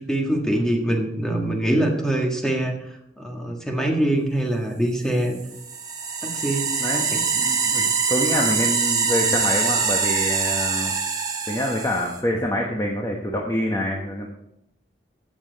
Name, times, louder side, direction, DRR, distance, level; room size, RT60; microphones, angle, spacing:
voice 1, 0.1-2.8 3.2-5.4 6.2-6.8 7.1-7.2, right 1 dB, 5° left, 1 dB, 1.7 m, -23 dB
sound 1, 5.4-12.2, right 5 dB, 20° right, 1.4 m, -24 dB
voice 2, 7.3-10.9 11.5-14.3, equal, 20° left, -1 dB, 1.2 m, -26 dB
15.0 x 7.3 x 4.1 m, 0.79 s
head